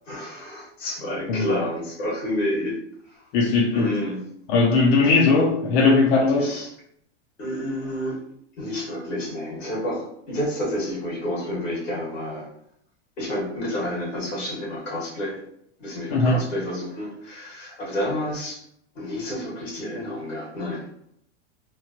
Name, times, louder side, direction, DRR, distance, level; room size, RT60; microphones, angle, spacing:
voice 1, 0.0-2.8 3.1-3.2 3.7-4.3 5.0-5.3 6.4-6.7 7.4-8.2 8.6-12.5 13.2-15.4 15.8-18.6 18.9-21.1, left 1 dB, 90° left, -3 dB, 1.5 m, -29 dB
voice 2, 3.3-3.9 4.5-6.5 16.1-16.4, left 3 dB, 60° left, 0 dB, 0.6 m, -19 dB
3.0 x 2.3 x 2.5 m, 0.72 s
hypercardioid pair, 110°, 37 cm